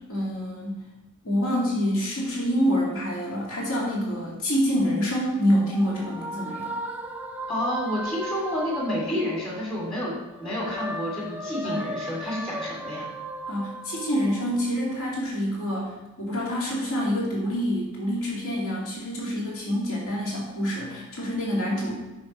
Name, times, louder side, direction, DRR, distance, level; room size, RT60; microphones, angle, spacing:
voice 1, 0.1-0.8 1.2-6.7 11.6-11.9 13.5-15.9 16.2-21.9, equal, 70° left, -4 dB, 2.2 m, -26 dB
sound 1, 4.9-9.9 10.3-15.0, right 1 dB, 5° right, 0.4 m, -36 dB
voice 2, 7.5-10.1 10.4-13.1, left 1 dB, 25° left, -5 dB, 2.4 m, -29 dB
6.3 x 5.9 x 4.3 m, 1.1 s
head